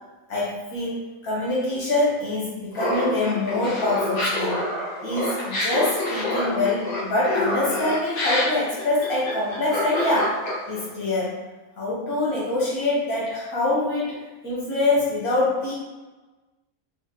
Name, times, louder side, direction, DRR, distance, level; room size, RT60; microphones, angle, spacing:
voice 1, 0.3-4.6 5.0-11.4 11.8-14.2 14.4-15.7, left 2 dB, 90° left, -7 dB, 2.0 m, -25 dB
Laughter, 2.7-10.8, left 1 dB, 75° left, 1.6 m, -27 dB
4.8 x 2.7 x 3.0 m, 1.2 s
omnidirectional pair, 1.5 m